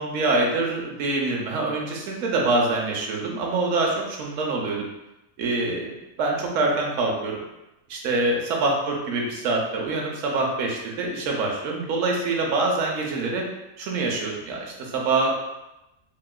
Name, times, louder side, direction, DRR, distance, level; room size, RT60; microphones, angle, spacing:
voice 1, 0.0-4.9 5.4-7.4 7.9-13.4 13.8-15.3, right 3 dB, 65° right, 0 dB, 0.9 m, -25 dB
3.6 x 2.3 x 2.2 m, 0.93 s
omnidirectional pair, 1.6 m